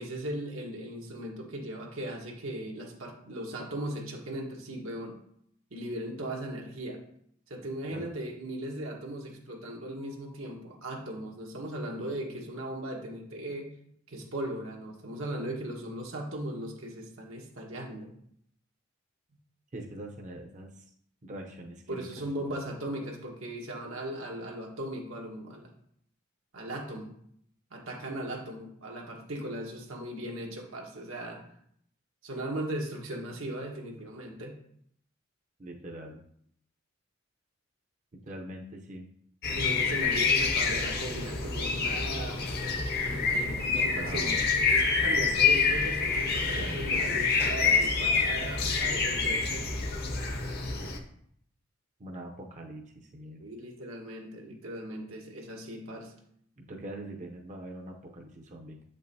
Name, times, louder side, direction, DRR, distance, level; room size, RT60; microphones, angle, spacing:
voice 1, 0.0-5.2 5.7-7.0 7.5-13.7 14.1-18.1 21.9-25.7 26.5-27.1 27.7-31.4 32.2-34.5 39.5-42.5 43.0-44.4 44.7-49.7 53.4-56.1, right 1 dB, 90° right, 0 dB, 1.3 m, -38 dB
voice 2, 19.7-20.8 21.2-22.5 35.6-36.2 38.1-39.1 43.5-43.6 43.9-44.4 46.4-47.3 52.0-53.4 56.6-58.8, right 1 dB, 40° right, 1 dB, 0.6 m, -43 dB
sound 1, 39.4-51.0, left 4 dB, 50° left, 0.7 m, -27 dB
7.4 x 5.3 x 2.7 m, 0.67 s
head